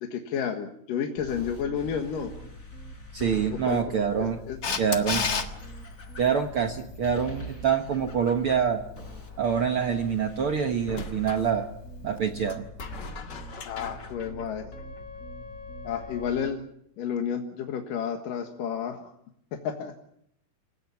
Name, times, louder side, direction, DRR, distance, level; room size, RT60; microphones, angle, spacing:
voice 1, 0.0-2.3 3.5-3.8 4.2-4.6 13.6-14.7 15.8-16.6 17.0-19.1 19.5-19.9, left 7 dB, 65° left, 3 dB, 3.0 m, -31 dB
sound 1, 1.2-16.5, left 1 dB, 20° left, 4.2 m, -42 dB
voice 2, 3.1-4.4 4.8-5.2 6.2-8.8 9.4-11.7 12.0-12.6, right 7 dB, 90° right, 5 dB, 1.2 m, -26 dB
Camera, 4.6-5.5 12.2-12.3, left 5 dB, 80° left, 0.8 m, -27 dB
sound 2, 10.9-11.5 12.5-15.2, left 5 dB, 50° left, 1.3 m, -44 dB
28.5 x 17.0 x 7.1 m, 0.74 s
omnidirectional pair, 4.6 m